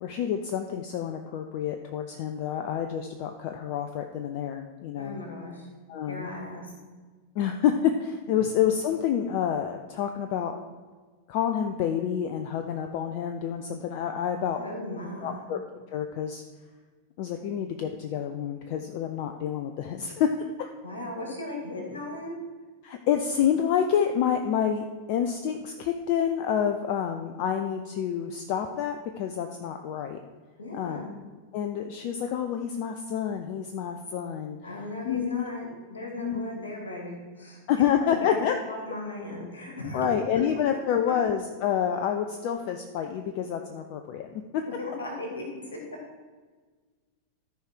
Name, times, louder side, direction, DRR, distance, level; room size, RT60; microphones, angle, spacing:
voice 1, 0.0-5.2 5.9-6.3 7.4-10.6 11.3-14.6 15.2-15.6 15.9-16.4 17.2-20.7 22.8-30.2 30.7-31.0 31.5-34.6 35.0-35.5 36.2-36.4 37.7-38.5 39.9-44.6, left 8 dB, 45° left, 6 dB, 0.6 m, -28 dB
voice 2, 5.0-5.7 6.1-6.7 14.6-15.4 20.8-22.4 30.6-31.1 34.6-40.1 44.6-45.8, left 2 dB, 70° left, 0 dB, 2.5 m, -37 dB
13.5 x 4.9 x 4.6 m, 1.4 s
figure-of-eight pair, 90°, 0 cm